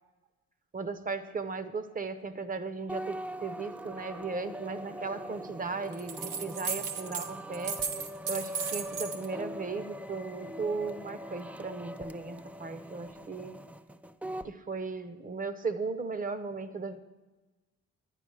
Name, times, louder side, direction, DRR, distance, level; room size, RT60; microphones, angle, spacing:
voice 1, 0.7-7.8 8.3-13.6 14.4-17.0, right 4 dB, 30° right, 11 dB, 0.8 m, -36 dB
sound 1, 2.9-14.5, equal, 5° right, 0.3 m, -42 dB
sound 2, 5.9-7.3 7.5-9.3, right 6 dB, 90° right, 1.0 m, -35 dB
10.0 x 9.7 x 4.8 m, 1.2 s
cardioid pair, 90°, 30 cm